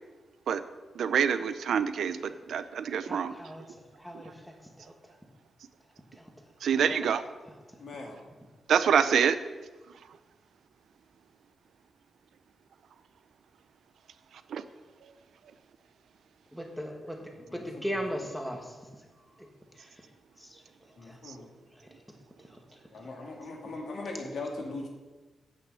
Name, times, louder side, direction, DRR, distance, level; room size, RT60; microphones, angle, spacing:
voice 1, 1.0-3.3 6.6-7.2 8.7-9.4 14.5-14.6, right 7 dB, 85° right, 12 dB, 0.5 m, -26 dB
voice 2, 3.1-3.6 4.0-4.3 4.8-4.9 6.2-6.3 16.5-18.7 20.4-20.5 21.1-21.2, equal, ahead, 2 dB, 1.3 m, -37 dB
voice 3, 6.7-7.1 7.8-8.2 17.5-18.3 21.0-21.5 22.9-24.9, left 2 dB, 60° left, 1 dB, 2.1 m, -40 dB
8.6 x 6.2 x 7.7 m, 1.3 s
wide cardioid pair, 160°, 0 cm